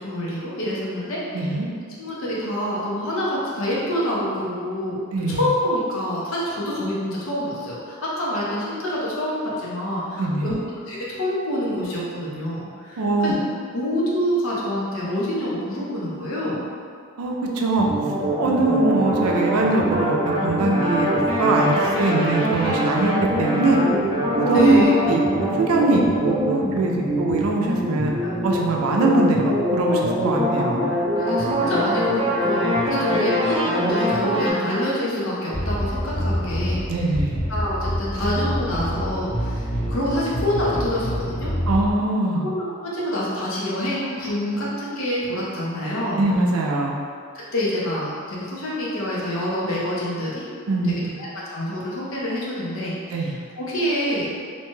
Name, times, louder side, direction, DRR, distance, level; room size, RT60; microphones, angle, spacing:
voice 1, 0.0-1.5 2.0-5.0 5.3-10.6 10.9-13.4 13.7-16.6 24.5-24.9 28.2-28.4 31.2-36.8 37.5-41.5 42.4-46.2 47.3-50.5 50.8-54.3, left 1 dB, 65° left, -6 dB, 0.7 m, -26 dB
voice 2, 1.3-1.7 5.1-5.5 10.2-10.6 13.0-13.3 17.2-17.9 18.4-23.1 23.4-23.8 24.4-24.8 25.1-28.1 28.4-30.9 36.9-37.5 41.7-42.4 46.2-47.0 50.7-50.9 53.1-53.3, right 2 dB, 85° right, 0 dB, 0.4 m, -22 dB
sound 1, 17.8-34.5, equal, 25° right, 0.6 m, -23 dB
sound 2, 35.5-41.9, equal, 30° left, 1.1 m, -26 dB
2.7 x 2.2 x 3.1 m, 2.1 s
head